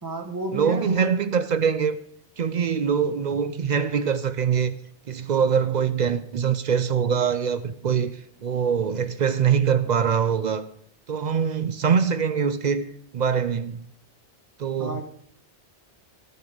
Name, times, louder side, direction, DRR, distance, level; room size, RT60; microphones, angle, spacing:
voice 1, 0.0-1.2 14.8-15.0, right 2 dB, 20° right, 1.0 m, -32 dB
voice 2, 0.5-2.0 2.4-4.7 5.1-10.6 11.1-12.9 13.1-13.9 14.6-15.0, right 7 dB, 55° right, 0.5 m, -23 dB
13.0 x 6.4 x 5.1 m
omnidirectional pair, 1.2 m